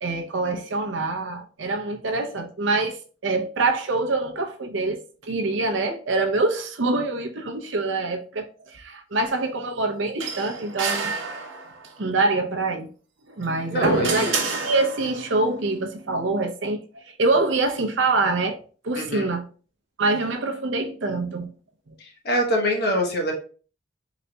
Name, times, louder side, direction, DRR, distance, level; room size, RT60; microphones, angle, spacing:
voice 1, 0.0-11.1 12.0-12.9 13.4-14.3 14.6-18.6 18.8-19.4 20.0-21.5 21.9-22.0, right 3 dB, 70° right, 0.7 m, -25 dB
sound 1, 10.2-11.9 13.3-15.3, right 3 dB, 85° right, 1.0 m, -28 dB
voice 2, 13.7-14.4 19.0-19.3 22.0-23.3, equal, 55° left, 1.1 m, -24 dB
4.0 x 3.9 x 2.2 m
head